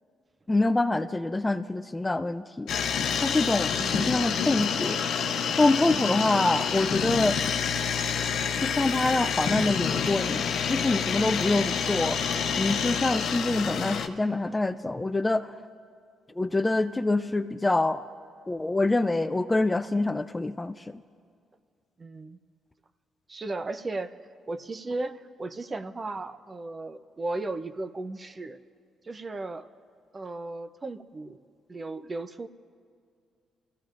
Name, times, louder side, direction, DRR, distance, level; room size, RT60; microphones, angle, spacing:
voice 1, 0.5-2.7 3.2-5.0 5.6-7.4 8.6-12.2 12.6-15.5 16.4-18.0 18.5-20.7, left 2 dB, 15° left, 10 dB, 0.4 m, -25 dB
sound 1, 2.7-14.1, left 7 dB, 75° left, 0.7 m, -28 dB
voice 2, 5.9-6.3 22.0-22.4 23.3-24.1 24.5-28.6 29.0-29.7 30.1-31.4 31.7-32.5, right 2 dB, 30° right, 11 dB, 0.6 m, -35 dB
27.0 x 15.0 x 2.5 m, 2.2 s
cardioid pair, 90°, 0 cm